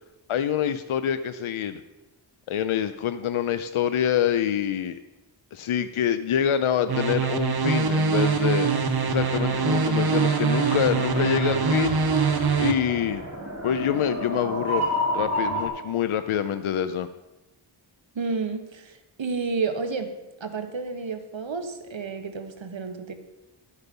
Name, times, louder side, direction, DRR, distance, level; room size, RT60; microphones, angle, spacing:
voice 1, 0.3-1.8 2.5-5.0 5.5-12.0 12.6-13.2 13.6-17.1, left 9 dB, 80° left, 11 dB, 0.6 m, -26 dB
sound 1, 6.9-12.7, right 5 dB, 50° right, 1.0 m, -23 dB
sound 2, 9.0-15.7, equal, 30° right, 3.5 m, -31 dB
voice 2, 18.1-20.1 20.4-23.1, right 4 dB, 65° right, 7 dB, 1.3 m, -31 dB
12.0 x 8.2 x 5.3 m, 1.1 s
wide cardioid pair, 85°, 49 cm